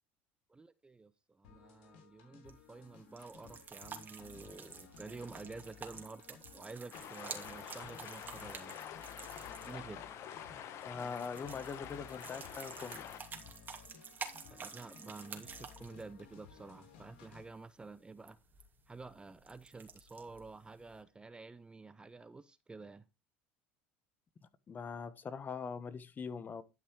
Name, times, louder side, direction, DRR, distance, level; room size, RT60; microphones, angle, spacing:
voice 1, 0.5-8.8 9.6-10.0 14.5-18.4 18.9-23.1, right 3 dB, 15° right, 0.8 m, -50 dB
sound 1, 1.4-17.4, left 7 dB, 70° left, 3.3 m, -58 dB
sound 2, 2.5-21.0, right 6 dB, 30° right, 2.7 m, -51 dB
sound 3, 6.9-13.2, left 9 dB, 50° left, 1.4 m, -47 dB
voice 2, 10.5-13.0 24.7-26.6, left 5 dB, 30° left, 1.3 m, -42 dB
11.5 x 5.8 x 4.7 m
hypercardioid pair, 75°, 6 cm